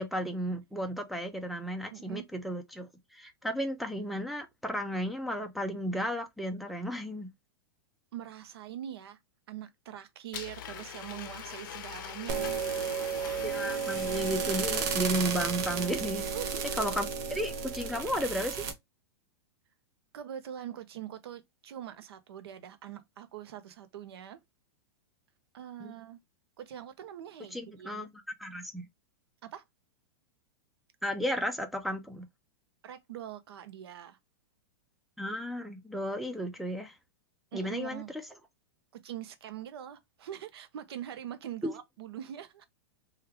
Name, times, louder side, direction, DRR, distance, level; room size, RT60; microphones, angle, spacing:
voice 1, 0.0-7.3 13.4-16.3 16.8-18.6 25.8-25.9 27.5-28.9 31.0-32.3 35.2-36.9 37.5-38.0 41.6-41.7, equal, ahead, 0.4 m, -34 dB
voice 2, 1.9-2.3 8.1-9.2 9.5-13.4 14.0-14.2 16.2-16.7 20.1-24.4 25.5-26.2 26.6-28.0 29.4-29.6 32.8-34.2 37.5-38.1 38.9-42.7, right 11 dB, 75° right, 0.8 m, -43 dB
Domestic sounds home sounds, 10.3-16.0, left 10 dB, 50° left, 0.6 m, -43 dB
sound 1, 12.3-18.7, right 6 dB, 45° right, 0.9 m, -33 dB
3.1 x 2.4 x 3.3 m
supercardioid pair, 160°, 13 cm